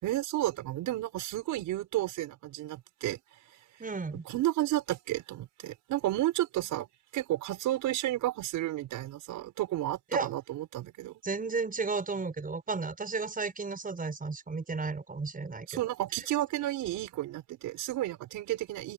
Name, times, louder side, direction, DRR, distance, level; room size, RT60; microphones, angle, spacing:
voice 1, 0.0-3.2 4.3-6.9 7.1-11.1 15.7-18.9, right 14 dB, 90° right, 6.1 m, -32 dB
voice 2, 3.8-4.2 10.1-10.3 11.2-15.9, right 4 dB, 30° right, 6.2 m, -33 dB
open air
cardioid pair, 90°, 30 cm